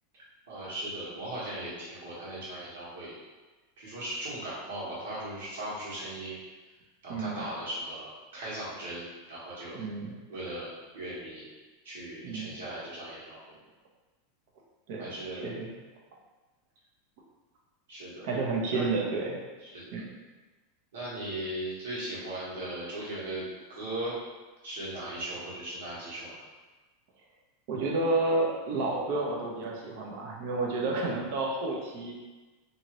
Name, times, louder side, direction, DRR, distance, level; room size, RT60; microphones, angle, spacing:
voice 1, 0.5-3.1 3.8-6.4 7.0-9.8 10.3-11.5 11.8-13.4 15.0-15.5 17.9-18.3 18.7-18.9 19.6-19.9 20.9-24.1 24.6-26.3, right 1 dB, 90° right, -8 dB, 1.4 m, -38 dB
voice 2, 7.1-7.5 9.7-10.1 12.2-12.5 14.9-15.1 15.4-15.7 18.2-19.4 19.9-20.1 27.7-32.1, right 3 dB, 55° right, -2 dB, 0.6 m, -30 dB
2.7 x 2.7 x 3.0 m, 1.2 s
supercardioid pair, 165°, 0 cm